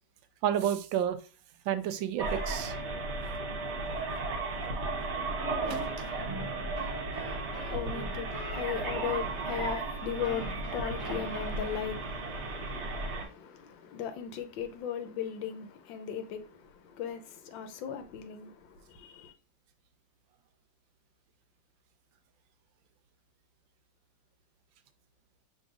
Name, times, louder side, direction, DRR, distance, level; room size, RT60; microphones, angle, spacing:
voice 1, 0.4-1.2 1.7-2.7 3.2-3.3 5.7-5.8, right 10 dB, 90° right, 1.3 m, -30 dB
sound 1, 2.2-13.2, right 2 dB, 45° right, 1.0 m, -34 dB
sound 2, 5.6-12.2, equal, 30° left, 0.5 m, -48 dB
voice 2, 7.3-19.3, left 8 dB, 80° left, 1.4 m, -38 dB
6.3 x 3.3 x 2.4 m
omnidirectional pair, 2.0 m